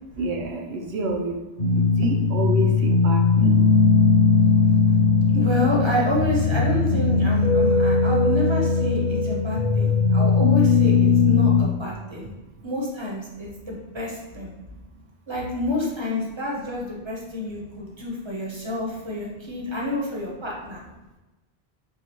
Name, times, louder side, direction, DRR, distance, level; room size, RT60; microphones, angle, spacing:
voice 1, 0.2-1.3 1.7-3.7, right 2 dB, 80° right, 1 dB, 0.9 m, -28 dB
sound 1, 1.6-11.6, left 4 dB, 35° left, 1.0 m, -19 dB
voice 2, 5.3-12.3 12.6-14.5 15.3-20.8, left 1 dB, 25° right, -3 dB, 0.9 m, -28 dB
6.5 x 2.4 x 3.0 m, 1.1 s
omnidirectional pair, 1.1 m